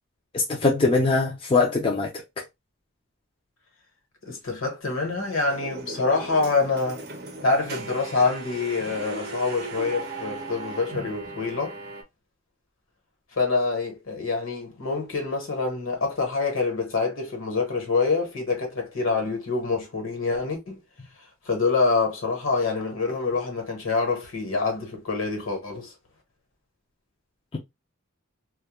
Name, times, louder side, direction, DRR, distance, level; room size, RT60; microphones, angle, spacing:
voice 1, 0.3-2.1 2.4-2.5 27.5-27.6, left 3 dB, 25° left, 0.3 m, -22 dB
voice 2, 4.2-7.0 7.4-11.8 13.3-20.8 21.4-25.9, left 4 dB, 70° left, 1.1 m, -26 dB
sound 1, 5.2-12.0, right 2 dB, 50° right, 0.6 m, -37 dB
2.2 x 2.1 x 2.8 m
head